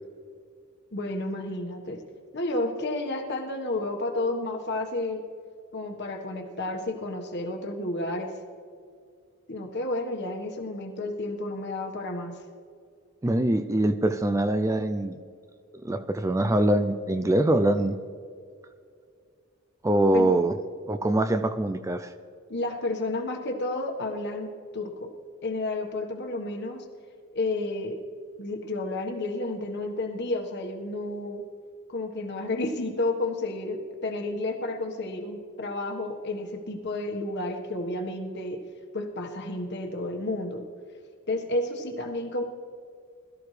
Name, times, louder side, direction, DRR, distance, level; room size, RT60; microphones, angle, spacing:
voice 1, 0.9-2.0 2.3-5.2 5.7-8.3 9.5-12.4 20.1-20.4 22.5-25.1 25.4-26.8 27.3-28.0 28.4-31.4 31.9-38.6 38.9-40.6 41.3-42.4, left 2 dB, 50° left, 3 dB, 1.5 m, -31 dB
voice 2, 13.2-15.2 15.8-18.0 19.8-20.5 20.9-22.1, right 1 dB, 15° right, 9 dB, 0.4 m, -23 dB
21.0 x 13.5 x 3.3 m, 2.3 s
head